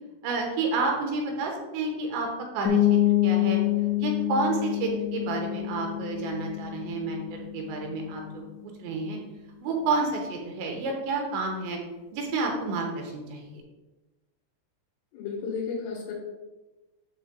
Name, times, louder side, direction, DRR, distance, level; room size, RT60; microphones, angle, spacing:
voice 1, 0.2-2.3 2.5-3.6 4.0-9.2 9.6-11.8 12.1-13.6, right 3 dB, 75° right, 2 dB, 3.0 m, -30 dB
sound 1, 2.6-8.2, left 13 dB, 65° left, 1.9 m, -27 dB
voice 2, 15.1-16.1, left 5 dB, 85° left, -6 dB, 4.1 m, -33 dB
10.0 x 7.2 x 2.3 m, 1.1 s
omnidirectional pair, 5.7 m